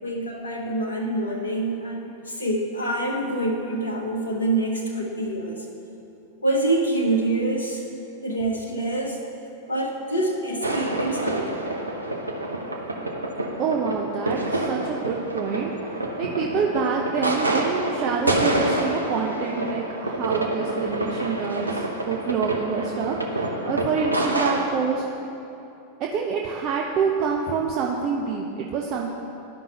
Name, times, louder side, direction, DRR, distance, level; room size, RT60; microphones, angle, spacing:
voice 1, 0.0-5.7 6.4-7.9 8.2-9.2 9.6-11.7, right 2 dB, 70° left, 1 dB, 0.7 m, -26 dB
sound 1, 10.6-24.7, right 1 dB, 80° right, 0.7 m, -27 dB
voice 2, 13.6-15.7 16.2-25.1 26.0-29.1, right 5 dB, 40° right, 0 dB, 0.6 m, -27 dB
12.5 x 5.3 x 2.8 m, 2.9 s
figure-of-eight pair, 90°, 0 cm